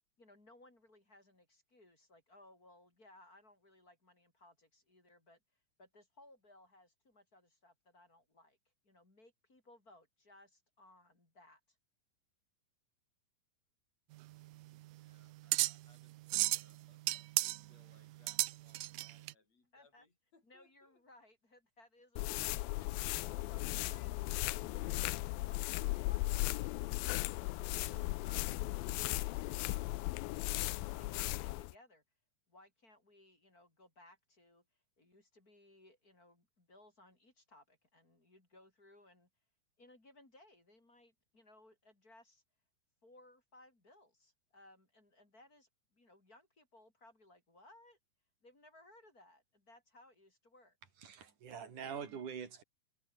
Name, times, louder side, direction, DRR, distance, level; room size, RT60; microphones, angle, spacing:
voice 1, 0.2-8.6 8.8-11.8 19.7-20.1 20.4-22.9 23.2-32.0 32.5-34.6 35.0-39.3 39.8-42.4 43.0-48.0 48.4-50.8, left 1 dB, 25° left, 5.1 m, -63 dB
sound 1, 14.1-19.3, right 18 dB, 80° right, 1.9 m, -35 dB
voice 2, 14.9-21.0, left 4 dB, 45° left, 7.7 m, -71 dB
sound 2, 22.2-31.7, left 21 dB, 85° left, 2.4 m, -37 dB
voice 3, 51.0-52.6, right 7 dB, 60° right, 4.8 m, -44 dB
omnidirectional pair, 4.1 m